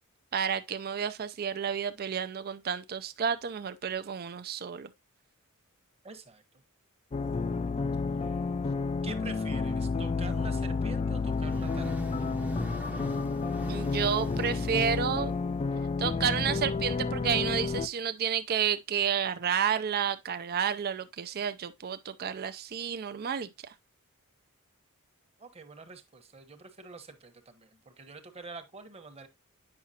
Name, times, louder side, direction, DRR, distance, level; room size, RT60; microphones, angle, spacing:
voice 1, 0.3-4.9 13.7-15.3 16.0-23.7, right 7 dB, 45° right, 0.4 m, -31 dB
voice 2, 6.0-6.4 8.1-8.3 9.0-12.0 25.4-29.3, right 4 dB, 25° right, 1.1 m, -46 dB
sound 1, 7.1-17.9, left 4 dB, 30° left, 0.3 m, -30 dB
sound 2, 11.2-15.7, equal, 5° right, 0.7 m, -42 dB
8.8 x 5.8 x 2.8 m
head